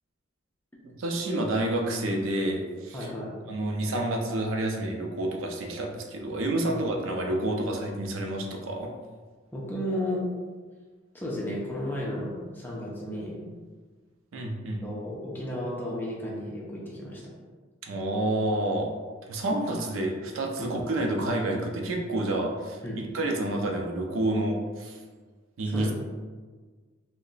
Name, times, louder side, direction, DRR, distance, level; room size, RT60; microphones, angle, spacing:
voice 1, 1.0-3.1 3.5-8.9 14.3-14.9 17.8-18.9 19.3-22.8 23.1-25.0 25.6-25.9, right 1 dB, 85° right, 2 dB, 0.5 m, -29 dB
voice 2, 2.9-3.3 6.7-6.9 9.5-10.2 11.1-13.4 14.8-17.2 20.6-20.8 22.8-23.0 25.7-25.9, left 1 dB, 10° left, -5 dB, 0.5 m, -33 dB
2.8 x 2.1 x 3.9 m, 1.4 s
head